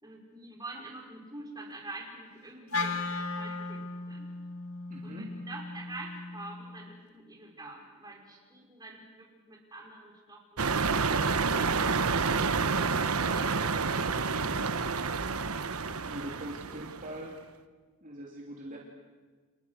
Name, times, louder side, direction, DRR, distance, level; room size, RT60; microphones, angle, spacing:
voice 1, 0.0-3.0 3.4-4.3 5.0-14.2 16.3-16.5 16.8-17.0 18.7-18.8, right 2 dB, 20° right, 0 dB, 5.4 m, -47 dB
Wind instrument woodwind instrument, 2.7-7.0, left 3 dB, 75° left, 2.0 m, -37 dB
voice 2, 4.9-5.3 15.9-17.3 18.0-18.8, right 1 dB, 40° right, -1 dB, 3.1 m, -42 dB
sound 1, 10.6-17.1, right 4 dB, 80° right, 1.2 m, -29 dB
29.5 x 28.5 x 6.6 m, 1.4 s
head